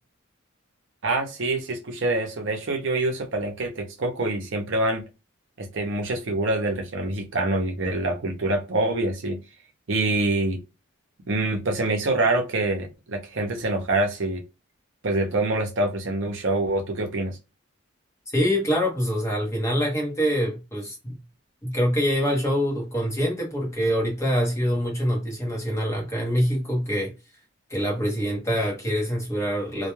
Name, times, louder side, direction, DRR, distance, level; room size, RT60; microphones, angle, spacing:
voice 1, 1.0-5.1 5.6-9.4 9.9-10.6 11.3-14.4 15.0-17.4, right 2 dB, 60° right, 0.6 m, -25 dB
voice 2, 18.3-21.2 21.6-27.1 27.7-29.9, equal, 15° left, 0.8 m, -25 dB
2.2 x 2.1 x 3.0 m
head